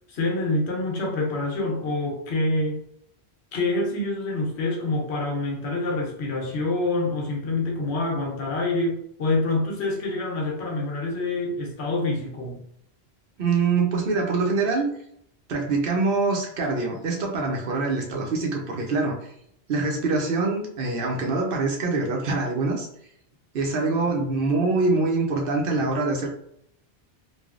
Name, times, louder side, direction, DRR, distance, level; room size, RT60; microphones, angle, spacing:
voice 1, 0.1-2.8 3.5-12.6, left 2 dB, 75° left, 0 dB, 1.1 m, -26 dB
voice 2, 13.4-14.9 15.5-19.2 19.7-22.9 23.5-26.3, right 3 dB, 60° right, 1 dB, 0.8 m, -24 dB
3.2 x 2.2 x 2.4 m, 0.69 s
omnidirectional pair, 1.1 m